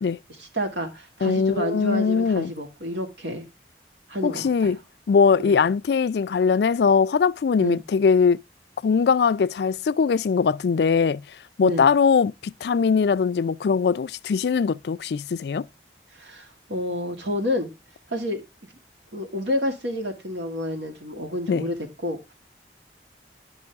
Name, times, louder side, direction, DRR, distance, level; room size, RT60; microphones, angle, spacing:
voice 1, 0.4-3.5 4.1-4.7 5.4-5.6 7.6-7.8 11.6-11.9 16.2-17.7 18.1-18.4 19.1-21.8 22.0-22.3, left 1 dB, 85° right, 2.1 m, -29 dB
voice 2, 1.2-2.5 4.2-4.8 5.1-8.4 8.8-11.2 11.6-15.7 21.5-21.6, left 5 dB, 65° left, 0.3 m, -21 dB
11.0 x 5.3 x 3.5 m
head